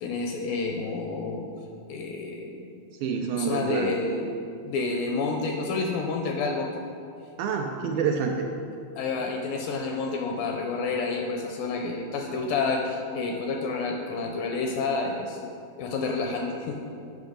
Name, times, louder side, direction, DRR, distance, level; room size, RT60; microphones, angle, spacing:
voice 1, 0.0-1.5 1.9-2.6 3.2-4.3 4.6-6.7 7.9-8.1 9.0-15.4 15.8-16.8, left 3 dB, 80° left, 2 dB, 2.1 m, -29 dB
voice 2, 3.0-3.9 7.4-8.5, right 6 dB, 80° right, 2 dB, 2.1 m, -27 dB
9.3 x 5.4 x 5.0 m, 2.4 s
omnidirectional pair, 4.5 m